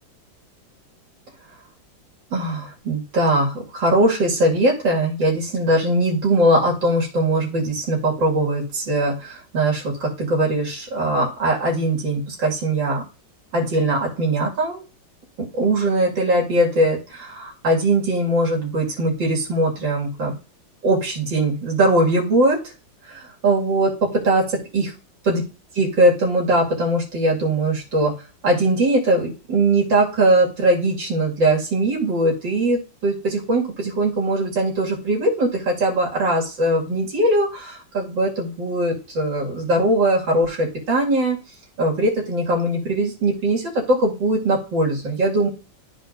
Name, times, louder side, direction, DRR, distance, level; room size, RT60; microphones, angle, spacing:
voice 1, 2.3-13.0 13.5-14.8 15.4-20.3 20.8-22.6 23.1-24.9 25.2-25.4 25.7-28.1 28.4-41.4 41.8-45.5, right 1 dB, 85° right, -3 dB, 2.9 m, -20 dB
13.0 x 4.4 x 2.6 m, 0.34 s
omnidirectional pair, 2.0 m